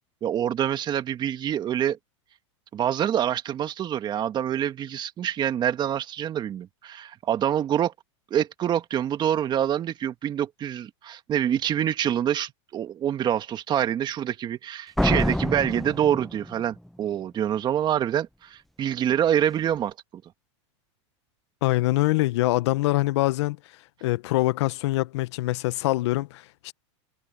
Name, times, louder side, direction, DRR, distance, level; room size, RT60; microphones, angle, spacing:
voice 1, 0.2-2.0 2.7-7.9 8.3-19.9, right 10 dB, 30° right, 1.9 m, -26 dB
Slam, 15.0-16.9, equal, ahead, 0.5 m, -26 dB
voice 2, 21.6-23.6 24.0-26.7, left 18 dB, 65° left, 1.2 m, -24 dB
supercardioid pair, 125°, 15 cm